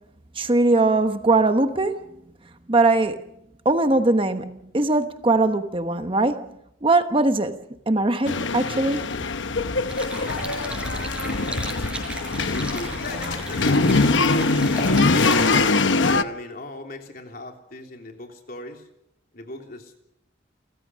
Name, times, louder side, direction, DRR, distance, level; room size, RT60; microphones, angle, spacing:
voice 1, 0.4-2.0 2.7-3.2 3.6-6.5 6.8-7.6 7.9-9.0, right 2 dB, 30° right, 1.1 m, -20 dB
sound 1, 8.3-16.2, left 3 dB, 75° left, 0.9 m, -22 dB
sound 2, 9.9-15.6, right 1 dB, 5° right, 5.6 m, -34 dB
voice 2, 12.5-15.5 15.8-18.9 19.3-20.0, left 2 dB, 50° left, 3.4 m, -37 dB
29.5 x 15.0 x 6.3 m
head